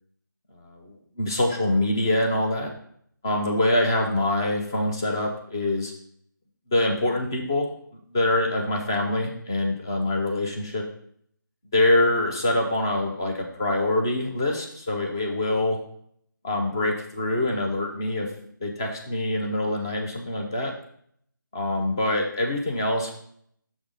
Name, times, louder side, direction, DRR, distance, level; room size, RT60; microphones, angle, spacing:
voice 1, 0.5-2.7 3.2-5.9 6.7-10.8 11.7-15.8 16.4-18.3 18.6-20.7 21.5-23.1, left 1 dB, 10° left, 1 dB, 0.4 m, -25 dB
6.2 x 3.5 x 5.1 m, 0.64 s
figure-of-eight pair, 165°, 11 cm